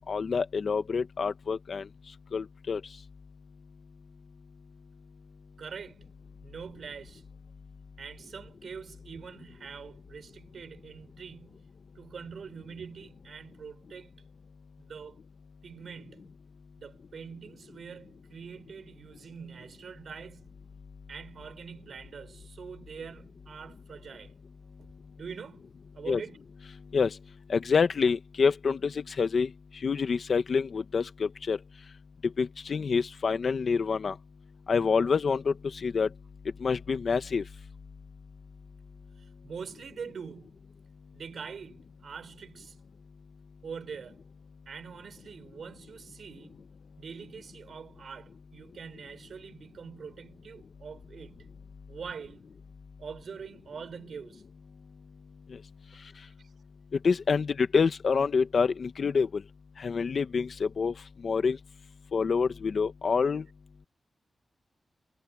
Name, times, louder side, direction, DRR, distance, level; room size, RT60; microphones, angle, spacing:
voice 1, 0.1-1.8 2.3-2.8 26.1-26.2 26.9-27.1 27.5-29.5 29.8-31.6 32.4-34.1 34.7-35.5 35.8-36.1 36.6-37.4 57.0-59.4 59.8-60.9 61.2-61.6 62.1-63.4, left 5 dB, 65° left, 1.2 m, -27 dB
voice 2, 5.6-6.1 6.4-7.2 8.0-14.2 14.8-15.2 15.6-16.4 16.8-20.5 21.1-24.3 24.8-24.9 25.2-26.4 39.2-40.6 41.1-42.8 43.6-44.2 44.7-46.7 47.0-51.5 51.9-52.5 53.0-54.4 56.4-56.5, right 6 dB, 80° right, 6.0 m, -44 dB
wide cardioid pair, 125°, 0 cm